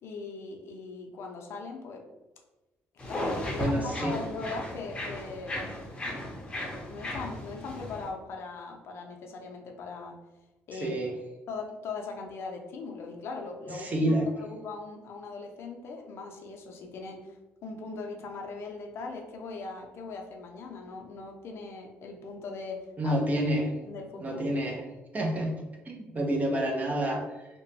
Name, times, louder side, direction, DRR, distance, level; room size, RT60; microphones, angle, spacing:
voice 1, 0.0-2.1 3.1-5.6 6.9-10.2 10.7-11.0 11.5-23.2 23.9-24.6, left 4 dB, 60° left, 2 dB, 0.5 m, -40 dB
sound 1, 3.0-8.1, left 1 dB, 20° left, 0.7 m, -35 dB
voice 2, 3.6-4.2 10.7-11.1 13.7-14.3 23.0-23.7 24.2-24.8 25.1-25.5 25.9-27.5, right 1 dB, 30° right, 1 dB, 0.6 m, -28 dB
2.8 x 2.2 x 2.6 m, 1.1 s
cardioid pair, 90°, 5 cm